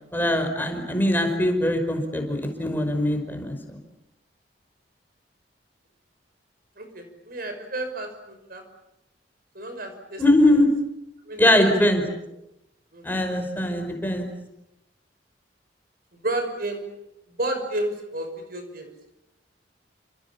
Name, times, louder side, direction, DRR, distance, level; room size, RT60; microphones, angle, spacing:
voice 1, 0.1-3.8 10.2-10.7 11.4-12.0 13.0-14.3, left 1 dB, 10° left, 5 dB, 5.3 m, -21 dB
voice 2, 6.8-8.7 9.5-10.2 11.3-12.1 12.9-13.4 16.1-17.0 17.4-19.0, right 1 dB, 55° right, 6 dB, 5.7 m, -32 dB
29.0 x 28.0 x 7.2 m, 0.87 s
head